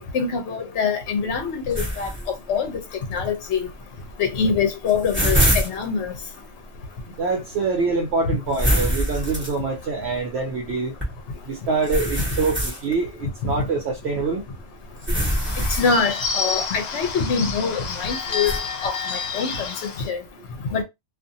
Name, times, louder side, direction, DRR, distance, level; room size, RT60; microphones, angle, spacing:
voice 1, 0.0-2.1 2.5-2.8 3.1-3.7 4.2-6.1 15.8-18.5 18.8-19.7 20.1-20.2 20.7-20.8, left 5 dB, 65° left, 0.9 m, -24 dB
sound 1, 1.7-2.3 2.9-3.0 4.2-4.3 4.6-5.8 8.5-9.8 11.0-11.1 11.8-12.9 15.0-16.2 18.4-18.6, equal, 10° right, 1.0 m, -23 dB
voice 2, 7.1-11.0 11.4-14.4, right 4 dB, 65° right, 0.8 m, -25 dB
Bird / Bell, 15.1-20.1, left 5 dB, 90° left, 0.3 m, -29 dB
2.5 x 2.4 x 2.6 m
omnidirectional pair, 1.3 m